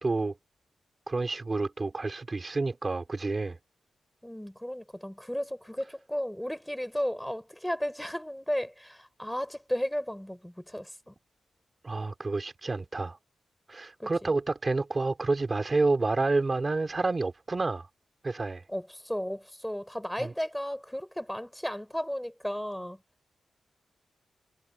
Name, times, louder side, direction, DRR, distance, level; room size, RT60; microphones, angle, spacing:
voice 1, 0.0-0.3 1.1-3.6 11.8-13.2 13.7-17.9 18.2-18.6 20.2-20.3, right 3 dB, 25° right, 3.3 m, -29 dB
voice 2, 4.2-11.1 14.0-14.3 18.7-23.0, equal, 5° left, 5.4 m, -34 dB
wide cardioid pair, 130°, 0 cm